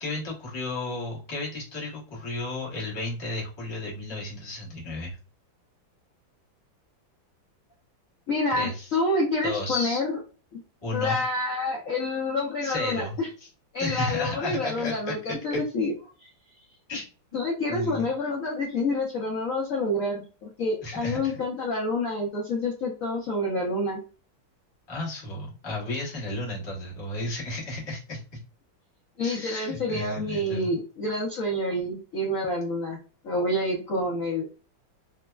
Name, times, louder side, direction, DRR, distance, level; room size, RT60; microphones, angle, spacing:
voice 1, 0.0-5.2 8.5-8.9 9.4-10.0 10.8-11.2 12.6-13.2 13.8-15.1 15.5-15.6 16.9-17.1 17.7-18.1 20.8-21.3 24.9-28.2 29.2-30.7, left 2 dB, 20° left, -5 dB, 0.7 m, -33 dB
voice 2, 8.3-10.2 10.5-10.6 10.9-13.3 13.7-15.9 16.2-16.3 17.3-24.0 29.2-33.0 33.2-34.6, left 2 dB, 65° left, -3 dB, 0.8 m, -28 dB
3.3 x 2.1 x 2.2 m, 0.36 s
omnidirectional pair, 2.1 m